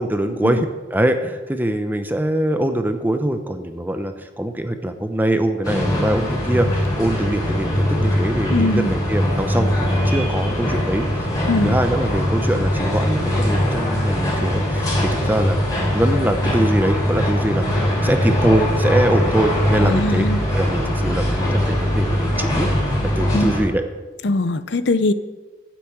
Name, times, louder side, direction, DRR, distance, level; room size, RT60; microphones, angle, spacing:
voice 1, 0.0-11.1 11.6-17.6 18.0-20.3 20.5-22.7 23.0-23.8, right 1 dB, 10° right, 7 dB, 0.7 m, -23 dB
sound 1, 5.6-23.6, equal, 20° left, 3.9 m, -21 dB
voice 2, 8.5-8.9 11.5-11.8 19.8-20.4 23.3-23.5 24.2-25.1, left 2 dB, 70° left, 13 dB, 0.7 m, -21 dB
9.2 x 8.3 x 7.9 m, 1.2 s
head